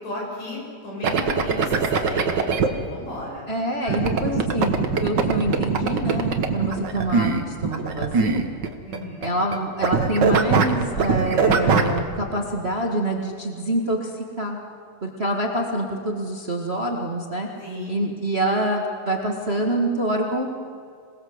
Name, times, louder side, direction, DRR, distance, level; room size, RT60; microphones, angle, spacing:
voice 1, 0.0-3.5 3.8-4.3 8.8-9.3 17.6-18.0, left 1 dB, 70° left, -3 dB, 8.6 m, -35 dB
sound 1, 1.0-2.7 3.9-9.6 9.8-12.0, right 5 dB, 45° right, 1.8 m, -21 dB
voice 2, 3.5-8.4 9.2-14.6 15.0-17.5 17.9-20.5, right 1 dB, 25° right, 1 dB, 1.7 m, -26 dB
27.0 x 19.5 x 8.0 m, 2.3 s
omnidirectional pair, 3.3 m